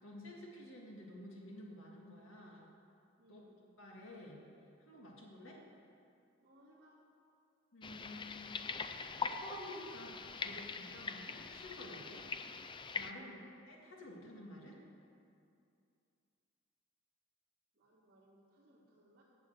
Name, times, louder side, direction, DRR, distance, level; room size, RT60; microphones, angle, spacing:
voice 1, 0.0-2.7 3.3-3.4 3.8-4.4 4.8-5.6 7.7-8.6 9.0-12.2 13.0-14.8, left 1 dB, 70° left, -2 dB, 2.3 m, -51 dB
voice 2, 3.2-3.6 6.4-7.0 13.1-13.3 17.7-19.2, right 1 dB, 45° right, -12 dB, 2.7 m, -65 dB
sound 1, 7.8-13.1, left 5 dB, 25° left, 0.4 m, -43 dB
11.0 x 7.3 x 8.0 m, 2.5 s
head